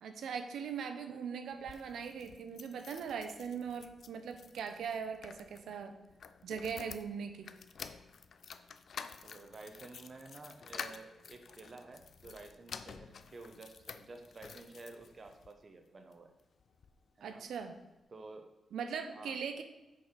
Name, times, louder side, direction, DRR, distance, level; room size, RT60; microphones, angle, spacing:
voice 1, 0.0-5.9 6.4-7.5 17.2-17.8 18.7-19.6, right 6 dB, 85° right, 7 dB, 0.8 m, -40 dB
sound 1, 1.5-15.5 16.1-17.0 17.3-17.4 17.6-17.7, left 6 dB, 50° left, 0.4 m, -50 dB
voice 2, 9.2-16.3 17.2-17.5 18.1-18.5 19.1-19.4, right 3 dB, 30° right, 5 dB, 0.7 m, -51 dB
6.6 x 5.3 x 5.7 m, 0.99 s
wide cardioid pair, 175°, 0 cm